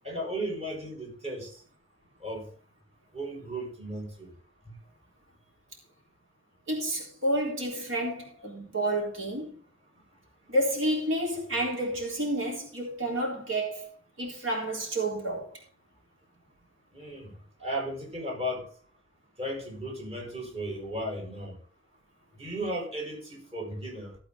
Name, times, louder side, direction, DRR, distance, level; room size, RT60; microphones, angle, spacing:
voice 1, 0.0-1.6 2.2-2.5 3.1-4.3 4.7-4.8 16.9-17.3 17.6-18.7 19.4-21.6 22.4-24.2, equal, 30° right, 5.8 m, -35 dB
voice 2, 6.7-9.5 10.5-13.9 14.2-15.6, right 1 dB, 75° right, 3.8 m, -30 dB
16.0 x 8.5 x 3.8 m
head